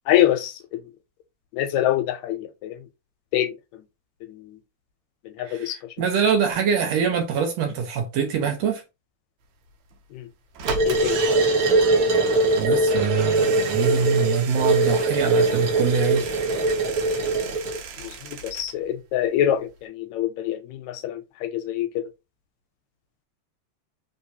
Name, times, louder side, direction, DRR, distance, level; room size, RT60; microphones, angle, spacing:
voice 1, 0.1-0.8 1.5-2.9 3.3-3.8 4.3-4.6 5.2-5.8 10.1-10.3 10.8-11.2 18.0-22.1, left 12 dB, 80° left, 1.8 m, -25 dB
voice 2, 5.4-8.8 12.5-16.4, right 6 dB, 70° right, 1.8 m, -24 dB
sound 1, 9.9-10.0 10.5-18.8 19.1-19.2 19.4-19.5, right 6 dB, 85° right, 2.2 m, -36 dB
sound 2, 10.7-17.8, right 2 dB, 50° right, 1.1 m, -21 dB
4.4 x 3.6 x 2.7 m
omnidirectional pair, 3.4 m